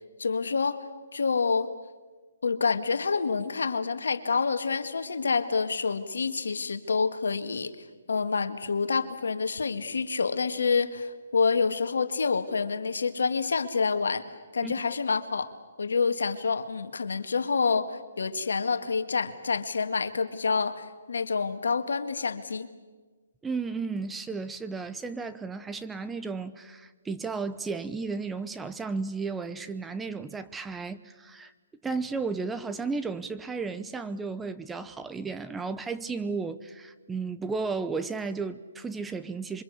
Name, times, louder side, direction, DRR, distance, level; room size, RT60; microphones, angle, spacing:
voice 1, 0.2-0.8 1.1-1.7 2.4-7.7 8.1-14.2 14.5-15.5 15.8-22.7, left 5 dB, 75° left, 1.9 m, -27 dB
voice 2, 23.4-31.5 31.8-39.6, right 4 dB, 10° right, 0.8 m, -34 dB
27.0 x 24.0 x 8.5 m
hypercardioid pair, 140°, 0 cm